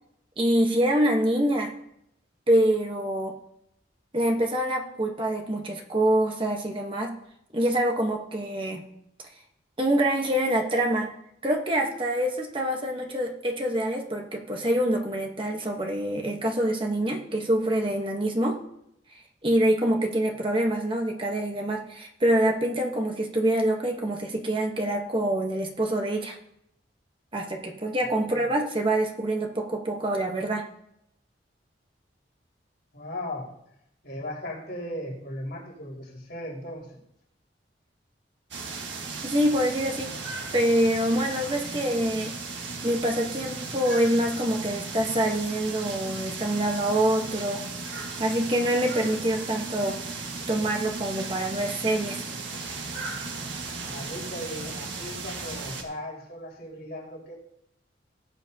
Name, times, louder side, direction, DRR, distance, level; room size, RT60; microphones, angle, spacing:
voice 1, 0.4-1.7 2.5-3.3 4.1-7.2 7.5-8.8 9.8-11.1 11.4-18.6 19.4-26.4 27.3-30.7 39.2-40.2 40.5-42.3 42.8-47.7 48.2-50.0 50.5-52.3, right 1 dB, 25° right, 1 dB, 1.1 m, -25 dB
voice 2, 32.9-33.5 34.0-37.0 53.9-57.3, left 1 dB, 60° left, -5 dB, 4.8 m, -37 dB
sound 1, 38.5-55.8, right 4 dB, 80° right, 1.6 m, -36 dB
19.0 x 8.0 x 2.8 m, 0.77 s
head